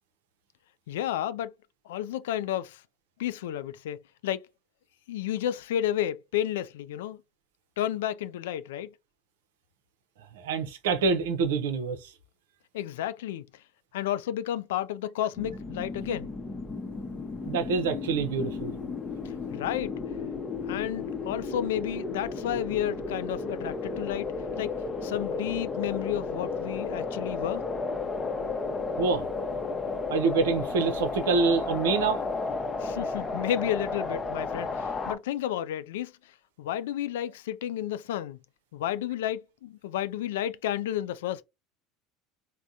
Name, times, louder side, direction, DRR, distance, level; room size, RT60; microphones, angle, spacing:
voice 1, 0.9-1.5 1.9-2.8 3.2-4.0 4.2-4.4 5.1-7.2 7.8-8.9 12.7-13.4 13.9-16.3 19.5-19.9 20.7-24.3 24.6-24.7 25.0-27.6 32.8-36.1 36.6-38.4 38.7-41.4, left 11 dB, 75° left, 0.3 m, -31 dB
voice 2, 10.3-12.1 17.4-18.7 29.0-29.3 30.1-32.2, right 4 dB, 75° right, 0.6 m, -26 dB
sound 1, 15.4-35.2, left 4 dB, 25° left, 0.7 m, -33 dB
3.4 x 2.1 x 2.6 m
hypercardioid pair, 80°, 0 cm